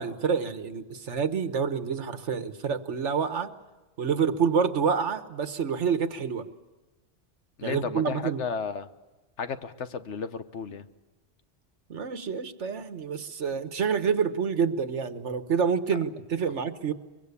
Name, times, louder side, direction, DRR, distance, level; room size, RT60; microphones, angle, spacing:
voice 1, 0.0-3.5 4.0-6.5 7.6-8.4 11.9-16.9, right 6 dB, 75° right, 10 dB, 1.5 m, -28 dB
voice 2, 7.6-8.9 9.4-10.9, left 5 dB, 75° left, 10 dB, 1.4 m, -33 dB
23.5 x 23.5 x 8.4 m, 1.1 s
omnidirectional pair, 1.2 m